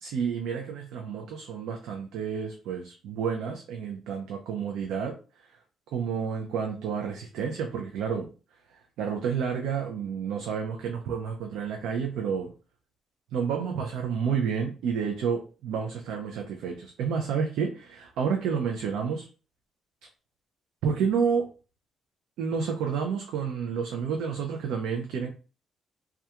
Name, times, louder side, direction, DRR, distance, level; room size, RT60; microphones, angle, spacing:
voice 1, 0.0-5.1 5.9-8.3 9.0-12.5 13.3-19.3 20.8-21.5 22.4-25.3, right 6 dB, 90° right, 2 dB, 0.4 m, -30 dB
2.3 x 2.2 x 2.8 m, 0.34 s
cardioid pair, 90°, 0 cm